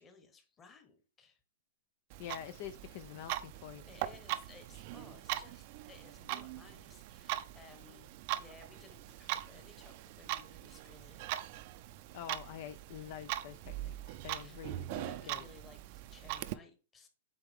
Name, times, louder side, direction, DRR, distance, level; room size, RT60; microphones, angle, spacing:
voice 1, 0.0-1.4 3.9-11.3 14.3-14.6 14.9-17.1, left 4 dB, 20° left, 7 dB, 1.2 m, -58 dB
Clock, 2.1-16.5, right 15 dB, 45° right, 0.5 m, -42 dB
voice 2, 2.2-3.8 12.1-15.4, left 11 dB, 50° left, 11 dB, 0.4 m, -46 dB
8.0 x 3.5 x 3.6 m, 0.35 s
hypercardioid pair, 135°, 0 cm